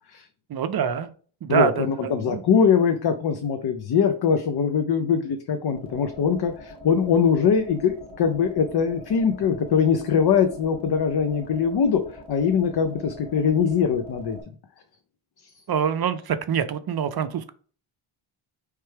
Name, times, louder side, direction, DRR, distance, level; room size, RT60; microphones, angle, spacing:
voice 1, 0.5-1.1 1.4-2.4 15.7-17.5, right 8 dB, 50° right, 10 dB, 0.5 m, -25 dB
voice 2, 1.5-12.0 12.3-14.4, left 6 dB, 55° left, 7 dB, 0.5 m, -22 dB
sound 1, 5.7-14.4, equal, 10° right, 0.9 m, -43 dB
4.4 x 3.3 x 3.3 m, 0.42 s
wide cardioid pair, 165°, 49 cm